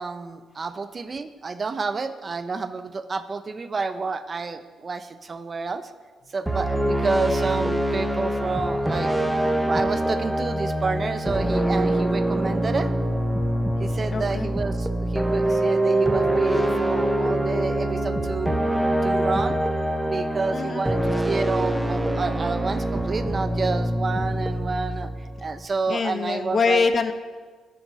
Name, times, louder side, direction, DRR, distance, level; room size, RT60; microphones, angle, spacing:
voice 1, 0.0-5.9 6.3-9.1 9.6-12.9 13.8-18.6 19.0-19.6 20.1-25.1 25.4-26.9, right 4 dB, 35° right, 12 dB, 0.6 m, -29 dB
sound 1, 6.5-25.6, right 1 dB, 5° right, 0.8 m, -24 dB
voice 2, 14.1-14.5 20.5-20.9 25.9-27.1, left 5 dB, 45° left, 9 dB, 0.8 m, -24 dB
9.1 x 7.5 x 5.6 m, 1.4 s
cardioid pair, 90°, 0 cm